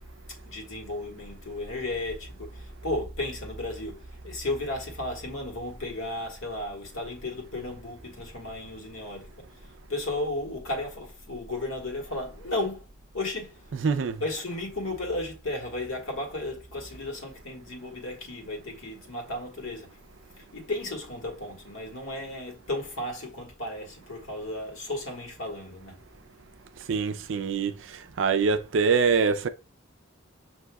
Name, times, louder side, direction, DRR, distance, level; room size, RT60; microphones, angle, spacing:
voice 1, 0.3-12.9 13.1-13.6 14.2-20.0 20.5-26.0, left 2 dB, 85° left, 1.6 m, -34 dB
voice 2, 13.7-14.2 26.9-27.7 28.2-29.5, right 5 dB, 70° right, 0.4 m, -24 dB
6.5 x 2.7 x 2.3 m
head